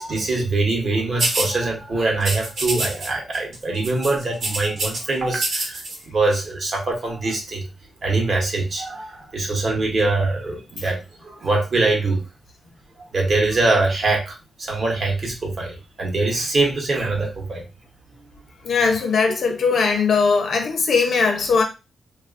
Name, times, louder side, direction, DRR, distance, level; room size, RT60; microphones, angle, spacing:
voice 1, 0.0-7.7 8.0-12.2 13.1-17.6, right 3 dB, 40° right, 0.8 m, -23 dB
sound 1, 1.2-1.5 2.2-3.1 3.3-3.6 3.8-5.0 5.3-6.0, right 2 dB, 65° right, 0.9 m, -25 dB
voice 2, 18.6-21.6, left 5 dB, 55° left, 0.6 m, -19 dB
3.1 x 2.4 x 2.4 m
wide cardioid pair, 160°, 0 cm